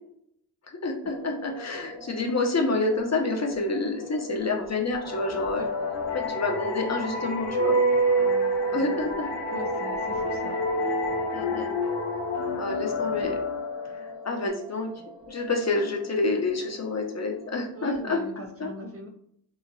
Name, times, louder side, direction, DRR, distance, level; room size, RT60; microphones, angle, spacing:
voice 1, 0.8-5.6 6.1-7.7 8.7-9.3 11.3-11.7 12.6-13.4 14.3-14.9 15.3-18.2 18.6-18.7, left 3 dB, 40° left, 1 dB, 0.7 m, -28 dB
sound 1, 1.0-18.3, equal, 80° right, 1.2 m, -45 dB
sound 2, 5.0-14.5, equal, 85° left, 0.7 m, -28 dB
voice 2, 9.5-10.6 17.8-19.1, right 1 dB, 35° right, 2 dB, 0.6 m, -40 dB
2.9 x 2.4 x 2.6 m, 0.70 s
cardioid pair, 50°, 41 cm